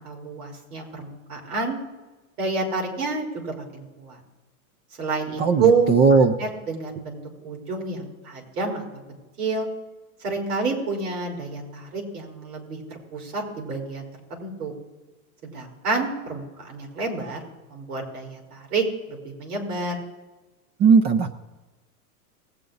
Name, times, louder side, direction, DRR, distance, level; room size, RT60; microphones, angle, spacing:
voice 1, 0.0-1.8 2.4-4.2 5.0-8.8 9.4-9.7 10.2-14.1 14.4-14.7 15.4-17.4 17.7-20.0, right 4 dB, 80° right, 1 dB, 4.5 m, -28 dB
voice 2, 5.4-6.3 20.8-21.3, right 5 dB, 25° right, 9 dB, 0.4 m, -17 dB
19.5 x 8.4 x 4.0 m, 1.2 s
supercardioid pair, 125°, 45 cm